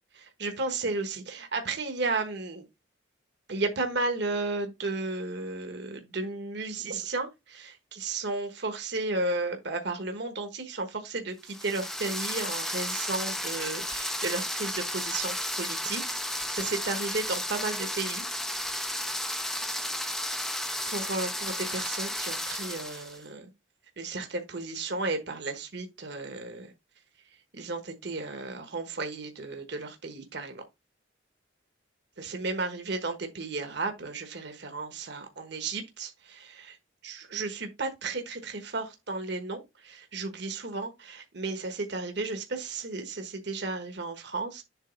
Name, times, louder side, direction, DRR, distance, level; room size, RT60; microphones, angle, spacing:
voice 1, 0.1-2.6 3.5-18.2 20.9-23.5 24.0-26.7 27.5-30.7 32.2-36.8 37.0-44.6, right 3 dB, 60° right, 1.3 m, -34 dB
sound 1, 11.4-23.2, left 1 dB, ahead, 0.5 m, -33 dB
7.4 x 3.1 x 5.2 m
head